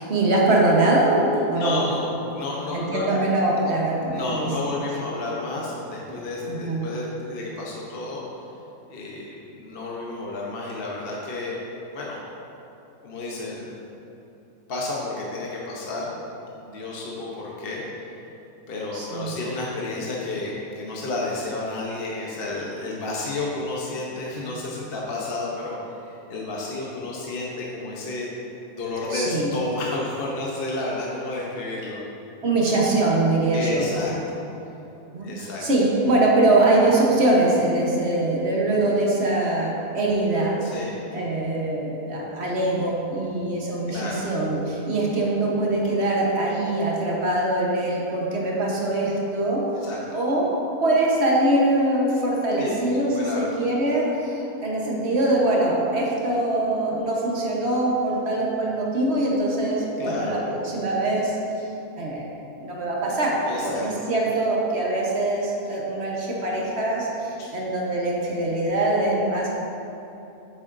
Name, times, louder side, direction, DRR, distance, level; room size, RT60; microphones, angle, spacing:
voice 1, 0.0-1.8 2.7-4.7 6.1-6.9 18.9-19.4 24.5-24.7 29.1-29.5 32.4-33.9 35.1-40.6 41.1-50.5 50.8-61.4 62.0-62.3 62.6-69.5, right 2 dB, 45° right, -3 dB, 1.2 m, -23 dB
voice 2, 1.6-3.1 4.1-8.2 8.9-11.6 11.9-12.2 13.0-13.7 14.7-16.1 16.6-17.8 18.7-28.3 28.8-32.0 33.5-34.4 35.2-35.7 40.6-40.9 43.9-44.3 49.8-50.2 52.6-52.8 53.2-53.6 60.0-60.4 63.5-64.1 67.4-67.6, left 2 dB, 45° left, -3 dB, 0.9 m, -31 dB
7.9 x 7.6 x 2.6 m, 3.0 s
omnidirectional pair, 1.7 m